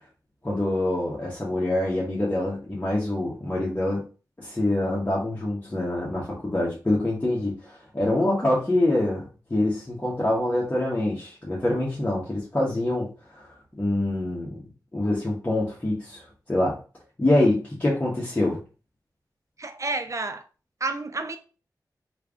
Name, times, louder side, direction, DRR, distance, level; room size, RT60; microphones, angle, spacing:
voice 1, 0.4-4.0 4.4-9.2 9.5-13.5 13.8-14.6 14.9-16.2 16.5-16.8 17.2-18.6, left 1 dB, 25° left, 1.2 m, -25 dB
voice 2, 19.6-20.4 20.8-21.4, right 3 dB, 45° right, 0.6 m, -30 dB
3.2 x 2.5 x 3.7 m
cardioid pair, 55°, 7 cm